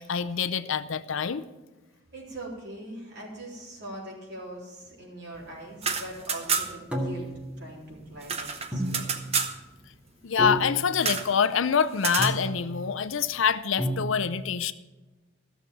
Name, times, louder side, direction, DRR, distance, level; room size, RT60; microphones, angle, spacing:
voice 1, 0.0-1.4 10.2-14.7, left 6 dB, 75° left, 13 dB, 0.6 m, -26 dB
voice 2, 1.9-9.1, right 1 dB, 55° right, -3 dB, 3.7 m, -42 dB
sound 1, 5.7-6.9 7.2-7.3 7.6-9.6 11.0-11.3 12.0-12.4, right 5 dB, 30° right, 0.8 m, -29 dB
sound 2, 6.9-7.5 8.7-9.3 10.4-11.0 12.2-12.7 13.8-14.1, equal, 5° right, 1.7 m, -31 dB
14.5 x 7.0 x 7.2 m, 1.2 s
head